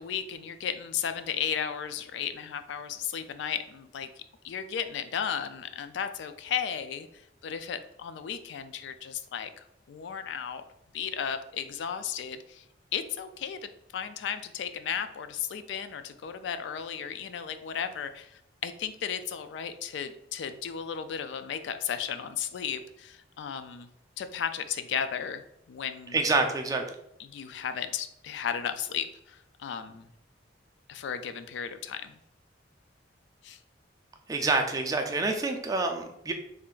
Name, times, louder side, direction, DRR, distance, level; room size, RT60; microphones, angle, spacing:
voice 1, 0.0-4.1 4.4-10.6 10.9-12.6 12.9-23.9 24.2-26.2 27.2-30.1 30.9-32.2 33.4-33.6, left 8 dB, 75° left, 10 dB, 0.3 m, -35 dB
voice 2, 26.1-26.8 34.3-36.3, right 3 dB, 20° right, 4 dB, 0.3 m, -27 dB
3.2 x 2.5 x 3.7 m, 0.78 s
head